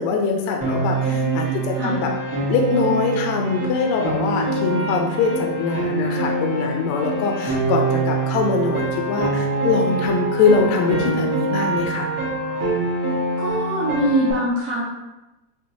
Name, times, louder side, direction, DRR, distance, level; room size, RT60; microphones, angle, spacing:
voice 1, 0.0-2.1 2.5-12.1, left 4 dB, 80° left, 1 dB, 1.8 m, -22 dB
Piano, 0.6-14.3, right 2 dB, 55° right, 1.7 m, -24 dB
voice 2, 1.1-1.9 13.4-14.8, right 1 dB, 75° right, -6 dB, 1.9 m, -24 dB
5.6 x 3.0 x 2.6 m, 1.0 s
omnidirectional pair, 3.3 m